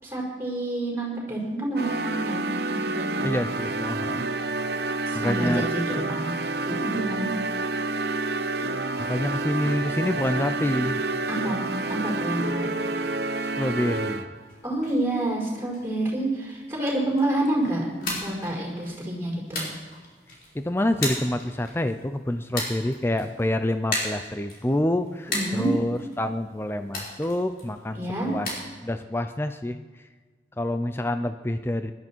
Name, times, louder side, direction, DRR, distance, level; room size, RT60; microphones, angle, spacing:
voice 1, 0.0-3.4 5.0-6.4 6.6-7.3 11.3-12.7 14.6-19.7 25.3-25.8 27.9-28.3, right 1 dB, 15° right, -3 dB, 5.1 m, -28 dB
sound 1, 1.8-14.4, right 3 dB, 65° right, 0.9 m, -29 dB
voice 2, 3.2-4.3 4.6-4.8 5.1-5.7 9.0-11.0 13.5-14.3 20.5-28.5 28.8-29.8 30.6-31.9, left 1 dB, 15° left, 9 dB, 0.5 m, -27 dB
sound 2, 14.3-28.6, left 2 dB, 55° left, 4.9 m, -37 dB
20.0 x 12.5 x 4.6 m, 1.4 s
head